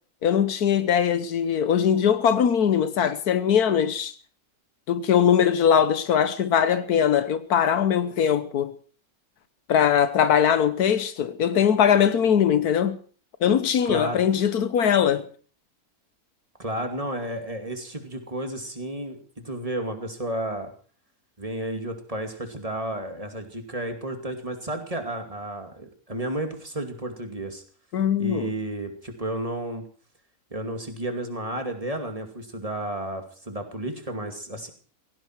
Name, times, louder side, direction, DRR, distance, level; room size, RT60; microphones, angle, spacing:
voice 1, 0.2-4.1 4.9-8.7 9.7-13.0 13.4-15.3 27.9-28.5, left 8 dB, 85° left, 1.5 m, -21 dB
voice 2, 13.8-14.2 16.6-20.7 21.4-27.6 28.2-29.8 30.5-34.7, right 1 dB, 25° right, 2.5 m, -32 dB
17.0 x 16.5 x 4.6 m
omnidirectional pair, 1.6 m